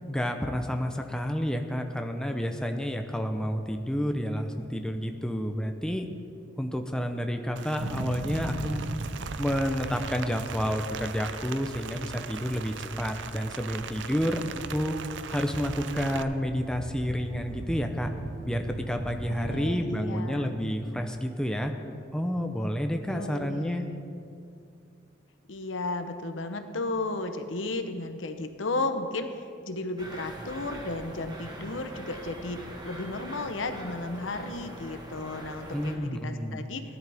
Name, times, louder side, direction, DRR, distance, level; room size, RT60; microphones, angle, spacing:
voice 1, 0.1-6.1 6.6-8.8 9.4-15.0 15.3-18.1 18.4-21.7 22.1-23.9 35.7-36.7, equal, 5° left, 5 dB, 0.6 m, -30 dB
Rain, 7.6-16.2, right 7 dB, 65° right, 0.5 m, -40 dB
sound 1, 7.8-19.7, right 1 dB, 90° right, 0.9 m, -39 dB
voice 2, 19.3-20.6 23.1-23.9 25.5-36.8, left 2 dB, 80° left, 8 dB, 0.8 m, -34 dB
sound 2, 30.0-36.0, right 1 dB, 20° right, 1.4 m, -42 dB
17.5 x 11.0 x 3.5 m, 2.4 s
head